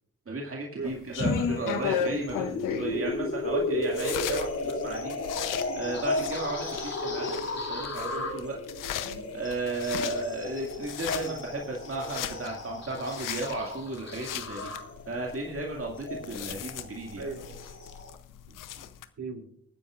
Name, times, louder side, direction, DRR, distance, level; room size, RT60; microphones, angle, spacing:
voice 1, 0.3-8.6 9.3-14.7 15.1-17.3, right 2 dB, 45° right, -1 dB, 2.2 m, -34 dB
sound 1, 0.8-19.1, left 8 dB, 80° left, 0.7 m, -37 dB
sound 2, 1.2-18.1, left 2 dB, 55° left, 2.9 m, -34 dB
voice 2, 9.0-9.4 11.2-11.4 17.1-17.6 18.5-18.9 19.2-19.5, right 4 dB, 65° right, 4 dB, 2.8 m, -39 dB
24.0 x 9.7 x 2.5 m, 0.64 s
supercardioid pair, 40°, 31 cm